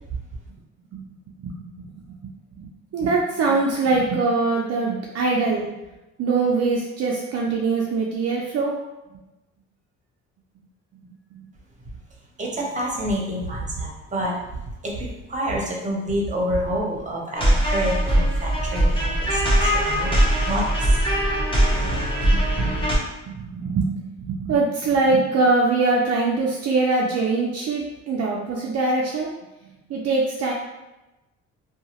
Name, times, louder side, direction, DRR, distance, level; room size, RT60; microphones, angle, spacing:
voice 1, 1.4-2.3 2.6-5.7 6.2-8.7 11.3-11.5 21.7-23.0 23.3-29.3 29.9-30.5, right 3 dB, 55° right, -3 dB, 0.5 m, -23 dB
voice 2, 12.4-14.4 14.8-21.0 21.5-21.6 21.9-22.0, right 1 dB, 25° right, -2 dB, 0.8 m, -28 dB
sound 1, 17.4-23.0, right 1 dB, 15° left, 1.0 m, -21 dB
2.7 x 2.3 x 2.9 m, 1.0 s
cardioid pair, 90°, 30 cm